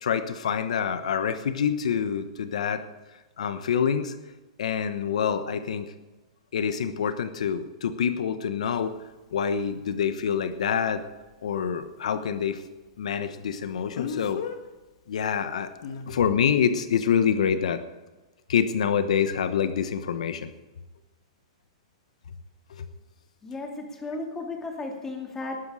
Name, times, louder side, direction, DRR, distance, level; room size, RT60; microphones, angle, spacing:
voice 1, 0.0-2.8 3.4-4.1 4.6-5.9 6.5-9.0 9.3-11.0 11.4-12.6 13.0-14.4 15.1-15.7 16.1-17.8 18.5-20.5 22.8-22.9, left 7 dB, 80° left, 11 dB, 1.1 m, -26 dB
Speech, 8.6-8.7 13.9-14.6 15.8-16.1, left 7 dB, 60° left, 1.6 m, -34 dB
voice 2, 23.4-25.6, left 3 dB, 10° left, 1 dB, 2.6 m, -34 dB
19.5 x 9.7 x 5.0 m, 1.2 s
hypercardioid pair, 155°, 4 cm